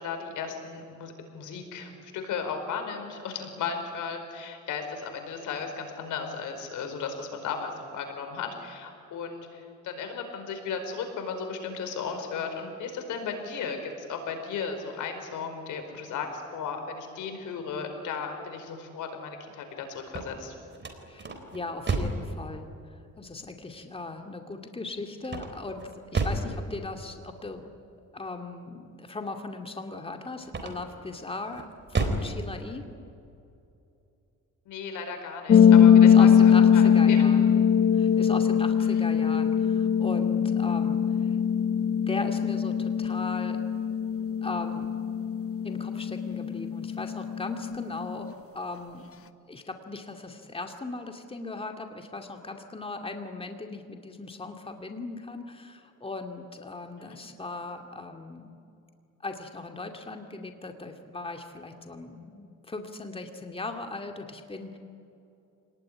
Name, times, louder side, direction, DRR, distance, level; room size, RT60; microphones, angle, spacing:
voice 1, 0.0-20.5 34.7-37.3 38.8-39.0 57.0-57.2, left 5 dB, 85° left, 6 dB, 4.7 m, -35 dB
sound 1, 20.0-22.3 25.2-26.5 30.4-31.0 31.5-32.3, right 3 dB, 35° right, 4.0 m, -30 dB
voice 2, 21.1-22.7 23.2-25.8 26.1-27.7 28.1-32.9 35.5-35.7 36.0-37.5 37.9-41.4 42.1-43.6 44.4-44.9 45.6-49.0 49.5-58.6 59.2-64.8, left 3 dB, 20° left, 4 dB, 2.4 m, -38 dB
sound 2, 35.5-48.3, left 8 dB, 50° left, 1.1 m, -21 dB
27.5 x 19.5 x 9.9 m, 2.7 s
cardioid pair, 90°, 30 cm